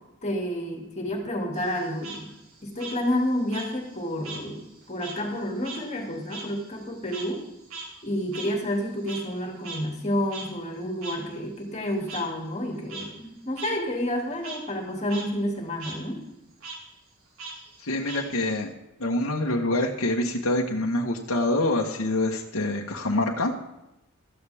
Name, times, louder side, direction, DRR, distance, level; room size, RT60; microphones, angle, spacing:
voice 1, 0.2-2.3 2.6-7.4 8.0-16.2, equal, 30° left, 1 dB, 2.7 m, -30 dB
Frog, 1.5-4.5 4.8-9.4 9.6-9.8 10.3-10.5 11.0-11.2 12.1-12.2 12.7-13.1 13.6-13.7 14.1-14.6 15.0-15.2 15.5-16.0 16.6-16.8 17.4-18.6, right 3 dB, 70° right, 4.0 m, -40 dB
voice 2, 17.8-18.7 19.0-23.5, left 1 dB, 75° left, -1 dB, 1.4 m, -26 dB
17.0 x 14.0 x 3.6 m, 0.92 s
head